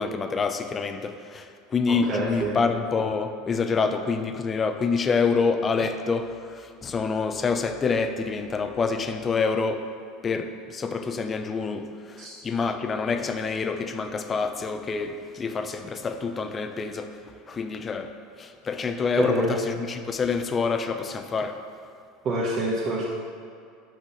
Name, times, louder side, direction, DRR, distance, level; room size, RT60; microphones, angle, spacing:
voice 1, 0.0-9.9 10.2-17.2 17.5-18.1 18.4-21.6, left 5 dB, 30° left, 8 dB, 0.6 m, -27 dB
voice 2, 2.1-2.6 12.2-12.3 19.2-19.5 22.2-23.0, right 2 dB, 45° right, -7 dB, 1.5 m, -26 dB
6.2 x 5.8 x 6.9 m, 2.3 s
hypercardioid pair, 95°, 0 cm